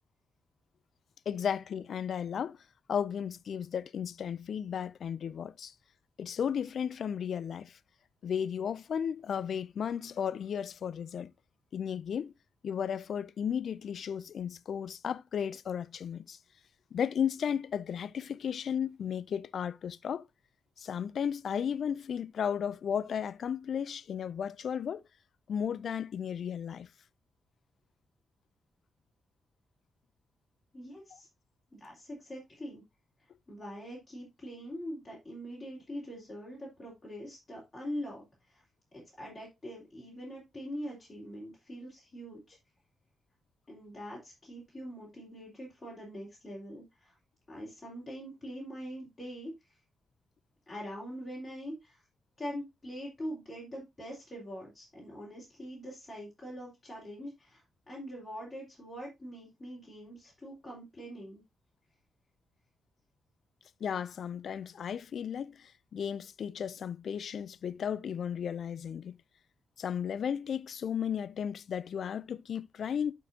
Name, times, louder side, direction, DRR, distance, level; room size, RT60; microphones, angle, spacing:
voice 1, 1.3-2.6 2.9-5.7 6.2-7.8 8.2-11.3 11.7-12.3 12.6-16.4 16.9-20.2 20.8-25.0 25.5-26.9 63.8-69.2 69.8-73.1, left 8 dB, 70° left, 0.4 m, -34 dB
voice 2, 30.7-31.3 31.7-32.8 33.5-38.6 38.9-42.6 43.7-47.2 47.5-49.5 50.7-52.0 52.4-61.4, equal, 25° left, 3.6 m, -43 dB
11.5 x 4.5 x 2.7 m
cardioid pair, 95°, 0 cm